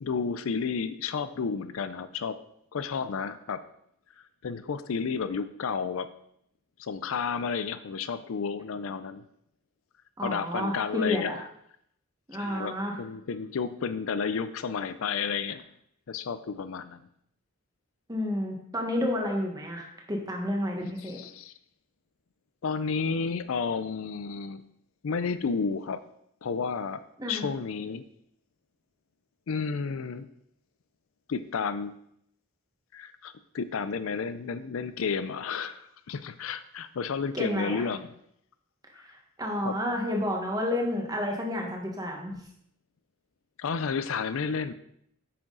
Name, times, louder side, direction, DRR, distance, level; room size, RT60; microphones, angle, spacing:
voice 1, 0.0-2.4 2.7-3.6 4.4-6.1 6.8-9.2 10.2-11.4 12.4-15.6 16.1-17.1 21.0-21.5 22.6-24.6 25.0-26.0 26.4-27.0 27.3-28.0 29.5-30.3 31.3-31.9 32.9-38.1 38.9-39.0 39.6-39.8 43.6-44.7, left 5 dB, 70° left, 13 dB, 0.4 m, -31 dB
voice 2, 10.2-11.4 12.3-13.0 18.1-21.2 27.2-27.5 37.3-37.9 39.0-42.4, left 1 dB, 15° right, 1 dB, 1.4 m, -30 dB
8.7 x 6.2 x 3.9 m, 0.72 s
head